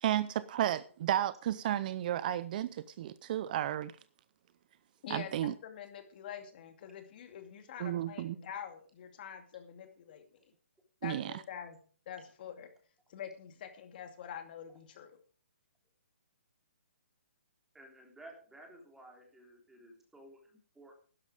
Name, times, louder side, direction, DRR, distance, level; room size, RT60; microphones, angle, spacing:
voice 1, 0.0-3.9 5.1-5.5 7.8-8.4 11.0-11.4, right 12 dB, 40° right, 0.6 m, -33 dB
voice 2, 5.0-10.2 11.0-11.8 12.1-12.7 13.1-15.2, left 8 dB, 45° left, 2.5 m, -46 dB
voice 3, 17.7-21.0, right 1 dB, 5° right, 3.4 m, -55 dB
12.0 x 10.5 x 5.0 m
hypercardioid pair, 145°, 7 cm